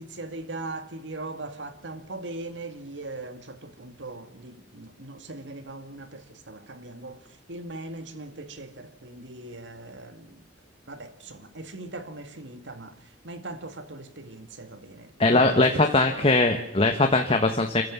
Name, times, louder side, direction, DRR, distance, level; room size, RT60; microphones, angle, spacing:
voice 1, 0.0-10.4 10.9-16.2, right 2 dB, 80° right, 2.2 m, -40 dB
voice 2, 15.2-17.8, left 2 dB, 30° left, 1.4 m, -21 dB
28.0 x 14.5 x 7.3 m
head